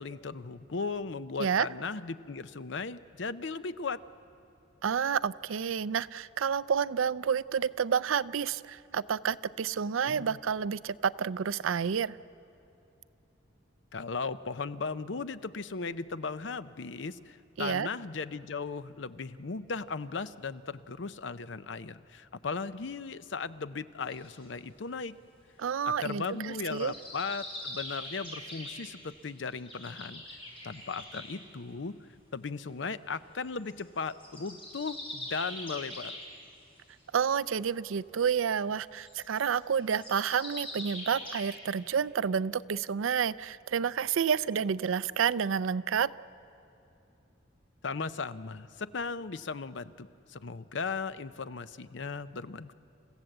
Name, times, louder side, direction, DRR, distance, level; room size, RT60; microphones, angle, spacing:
voice 1, 0.0-4.0 10.1-10.4 13.9-25.1 26.0-30.4 30.6-31.9 32.3-36.2 47.8-52.7, left 4 dB, 70° left, 14 dB, 0.6 m, -37 dB
voice 2, 4.8-12.2 17.6-17.9 25.6-26.9 37.1-46.1, right 7 dB, 90° right, 17 dB, 0.4 m, -29 dB
sound 1, 24.1-24.5 26.0-31.4 33.4-33.8 34.1-36.4 36.8-36.9 37.2-37.3 39.0-41.5, left 1 dB, 25° left, 5.9 m, -43 dB
28.5 x 15.5 x 7.9 m, 2.9 s
head